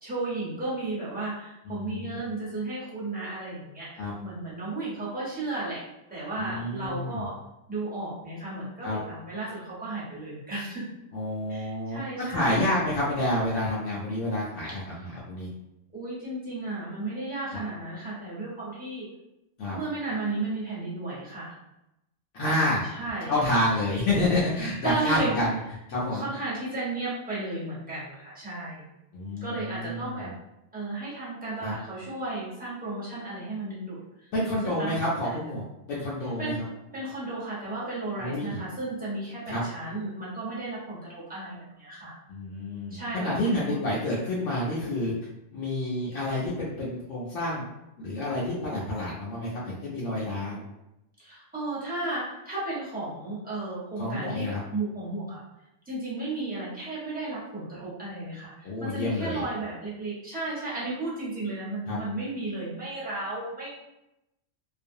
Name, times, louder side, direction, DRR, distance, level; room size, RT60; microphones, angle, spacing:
voice 1, 0.0-5.8 6.1-7.3 7.7-10.9 11.5-12.7 14.9-15.1 15.9-19.1 19.7-21.5 22.9-23.3 24.8-25.4 26.1-28.9 29.4-30.3 30.7-34.3 34.6-34.9 35.2-35.5 36.4-36.6 36.9-42.1 42.9-43.8 51.2-55.4 55.9-63.7, right 2 dB, 10° right, -9 dB, 0.8 m, -34 dB
voice 2, 1.7-2.2 4.0-4.1 6.4-7.3 8.8-9.0 11.1-15.5 19.6-19.8 22.3-22.8 23.3-25.6 25.9-26.3 29.1-30.3 31.6-31.7 34.3-35.6 35.9-36.5 38.2-38.6 39.5-39.6 42.3-45.1 45.5-47.7 48.0-50.6 54.0-54.6 58.6-59.4 61.9-62.0, left 1 dB, 75° left, -6 dB, 0.9 m, -29 dB
2.5 x 2.2 x 2.6 m, 0.90 s
omnidirectional pair, 1.3 m